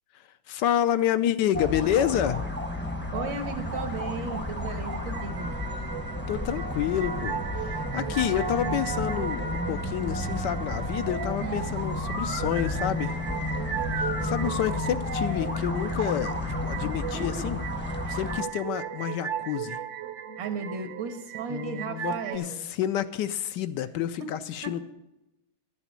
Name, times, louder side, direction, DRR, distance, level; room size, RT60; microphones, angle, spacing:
voice 1, 0.1-2.4 6.3-13.2 14.0-16.4 16.6-17.6 18.1-19.8 21.5-24.9, left 10 dB, 75° left, 12 dB, 1.2 m, -29 dB
sound 1, 1.5-18.4, left 1 dB, 10° left, 0.6 m, -31 dB
voice 2, 3.1-5.5 8.5-9.0 11.4-11.7 17.1-17.4 18.0-18.2 20.4-22.6 24.6-24.7, right 4 dB, 75° right, 7 dB, 2.1 m, -36 dB
sound 2, 4.7-22.4, right 9 dB, 55° right, 0.9 m, -38 dB
12.0 x 7.1 x 8.2 m, 0.92 s
omnidirectional pair, 2.1 m